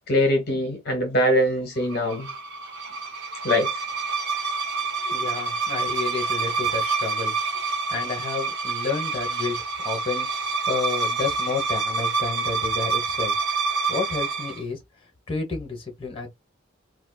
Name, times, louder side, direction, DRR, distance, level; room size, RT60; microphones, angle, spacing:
voice 1, 0.1-2.3 3.4-3.9, left 1 dB, 50° left, 0.8 m, -22 dB
sound 1, 1.9-14.6, right 4 dB, 60° right, 0.8 m, -27 dB
voice 2, 5.1-7.3 7.9-9.6 9.8-10.3 10.7-13.3 13.9-14.8 15.3-16.3, left 4 dB, 25° left, 1.1 m, -30 dB
4.1 x 2.3 x 2.3 m
head